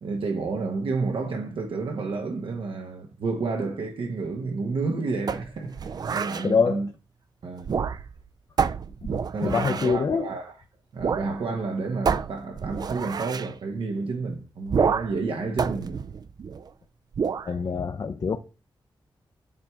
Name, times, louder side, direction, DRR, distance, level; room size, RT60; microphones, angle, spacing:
voice 1, 0.0-6.9 7.4-7.7 9.3-10.5 10.9-16.0, right 4 dB, 80° right, 1.0 m, -30 dB
sound 1, 5.3-6.5 7.6-8.2 8.6-10.0 11.0-11.3 11.6-11.7 12.0-13.5 14.7-15.2 15.6-16.7 17.1-17.5, right 6 dB, 50° right, 0.3 m, -28 dB
voice 2, 6.4-6.8 9.0-10.3 17.5-18.4, left 5 dB, 45° left, 0.5 m, -25 dB
7.4 x 4.4 x 3.5 m
wide cardioid pair, 110°, 9 cm